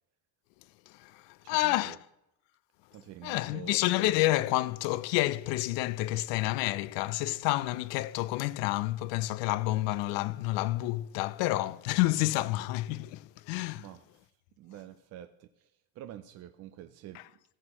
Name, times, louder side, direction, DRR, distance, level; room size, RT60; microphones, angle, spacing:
voice 1, 0.9-2.0 3.2-13.8 17.1-17.2, left 17 dB, 60° left, 0.6 m, -29 dB
voice 2, 1.4-2.0 2.9-3.8 13.8-14.2 14.6-17.3, right 12 dB, 35° right, 0.4 m, -48 dB
16.0 x 6.7 x 2.9 m
supercardioid pair, 110°, 49 cm